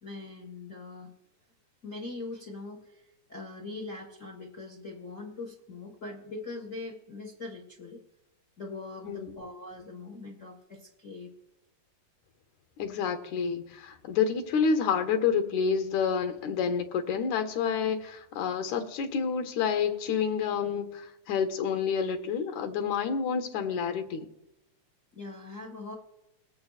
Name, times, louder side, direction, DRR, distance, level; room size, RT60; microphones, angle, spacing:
voice 1, 0.0-1.1 1.8-8.0 8.6-11.3 25.1-25.9, left 3 dB, 40° left, 1.3 m, -42 dB
voice 2, 9.0-9.5 12.8-24.3, left 6 dB, 75° left, 2.2 m, -29 dB
21.0 x 8.7 x 2.4 m
omnidirectional pair, 3.3 m